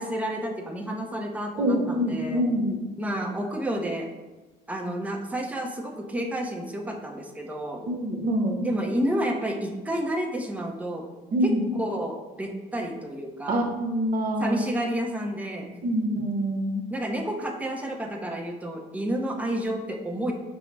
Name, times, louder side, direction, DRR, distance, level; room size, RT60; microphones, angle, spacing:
voice 1, 0.0-2.4 3.0-4.1 4.7-7.8 8.6-11.1 11.8-13.7 14.4-15.8 16.9-20.3, right 1 dB, 10° right, 1 dB, 0.6 m, -30 dB
voice 2, 1.6-2.8 7.9-8.7 11.3-11.6 13.5-14.6 15.8-16.8, equal, 60° right, 4 dB, 0.8 m, -25 dB
5.3 x 2.1 x 4.5 m, 1.2 s
cardioid pair, 110°, 17 cm